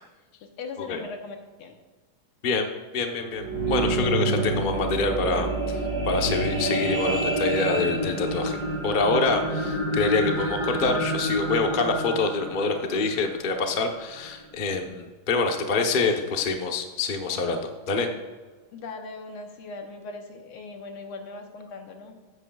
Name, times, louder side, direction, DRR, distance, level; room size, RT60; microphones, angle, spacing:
voice 1, 0.4-1.8 18.7-22.2, left 3 dB, 85° left, 3 dB, 2.0 m, -39 dB
voice 2, 2.9-5.8 6.1-8.6 8.8-18.1, left 3 dB, 45° left, 4 dB, 0.6 m, -26 dB
sound 1, 3.1-13.7 14.3-14.4, right 2 dB, 50° right, 2.0 m, -28 dB
13.5 x 9.6 x 2.3 m, 1.4 s
omnidirectional pair, 2.4 m